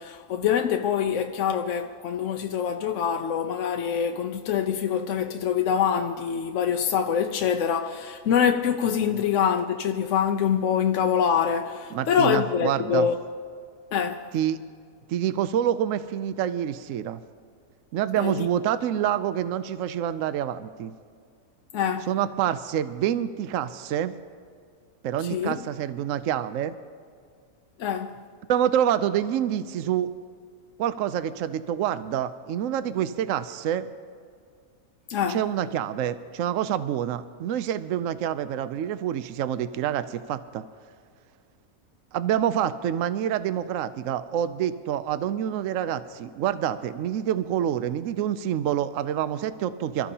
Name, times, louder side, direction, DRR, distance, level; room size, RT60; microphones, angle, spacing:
voice 1, 0.0-13.2 13.9-14.2 18.2-18.5 21.7-22.1 25.3-25.5 27.8-28.1 35.1-35.4, left 8 dB, 65° left, 0.9 m, -25 dB
voice 2, 11.9-13.1 14.3-14.6 15.1-17.2 17.9-20.9 22.1-24.1 25.0-26.7 28.5-30.1 30.8-33.9 35.3-40.6 42.1-50.1, right 10 dB, 70° right, 0.9 m, -27 dB
27.0 x 14.0 x 2.8 m
omnidirectional pair, 1.6 m